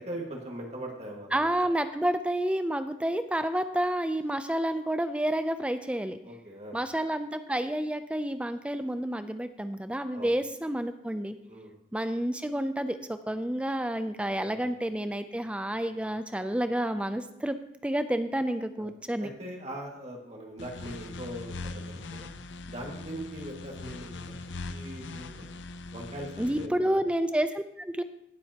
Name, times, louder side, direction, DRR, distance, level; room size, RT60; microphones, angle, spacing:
voice 1, 0.0-1.5 6.2-6.8 10.1-10.3 11.5-11.7 14.4-14.6 18.8-18.9 19.2-22.3 22.7-25.5 25.9-27.0, right 1 dB, 35° right, 0 dB, 1.8 m, -41 dB
voice 2, 1.3-6.2 6.7-11.4 11.9-17.6 17.8-19.3 26.4-28.0, right 1 dB, 5° right, 10 dB, 0.4 m, -29 dB
sound 1, 20.6-26.7, left 3 dB, 80° left, 0.6 m, -41 dB
17.0 x 7.6 x 2.9 m, 0.80 s
head